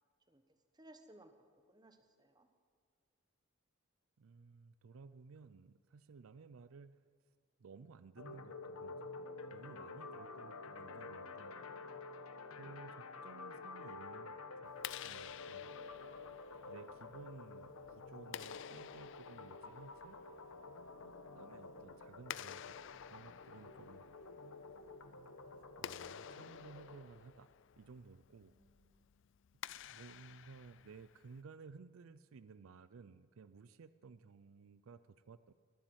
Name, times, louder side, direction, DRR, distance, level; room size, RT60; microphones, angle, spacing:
voice 1, 0.7-1.3 1.7-2.5 28.5-29.1, right 1 dB, 20° right, 7 dB, 1.1 m, -62 dB
voice 2, 4.2-7.1 7.6-11.6 12.6-15.7 16.6-20.2 21.0-24.0 25.8-27.5 27.8-28.5 29.8-35.5, right 4 dB, 75° right, 14 dB, 0.4 m, -57 dB
sound 1, 8.2-27.0, left 3 dB, 90° left, 1.1 m, -50 dB
Clapping, 14.7-31.4, left 10 dB, 60° left, 0.3 m, -52 dB
21.5 x 8.3 x 7.9 m, 2.1 s
head